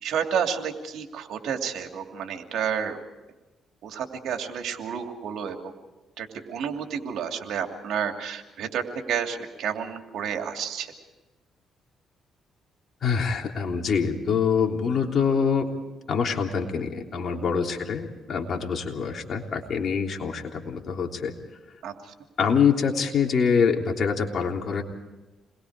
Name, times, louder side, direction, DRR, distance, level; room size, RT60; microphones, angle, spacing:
voice 1, 0.0-3.0 3.8-5.6 6.2-10.9 17.4-17.5 21.8-22.1, right 7 dB, 80° right, 4 dB, 2.7 m, -30 dB
voice 2, 13.0-15.7 16.1-21.3 22.4-24.8, left 6 dB, 55° left, 2 dB, 3.4 m, -25 dB
28.0 x 21.5 x 4.9 m, 1.1 s
cardioid pair, 90°, 0 cm